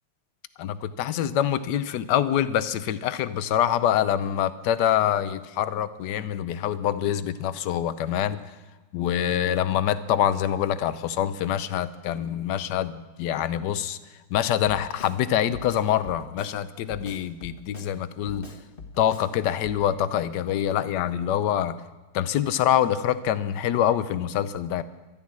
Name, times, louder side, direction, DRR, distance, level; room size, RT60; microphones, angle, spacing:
voice 1, 0.6-8.4 8.9-14.0 14.3-18.5 19.0-21.8 22.1-24.8, left 10 dB, 70° left, 13 dB, 1.1 m, -25 dB
Drum kit, 14.7-15.2 15.5-16.6 16.9-17.9 18.3-19.3 19.6-19.8, left 4 dB, 30° left, 1.3 m, -42 dB
13.0 x 10.5 x 9.6 m, 1.2 s
omnidirectional pair, 2.4 m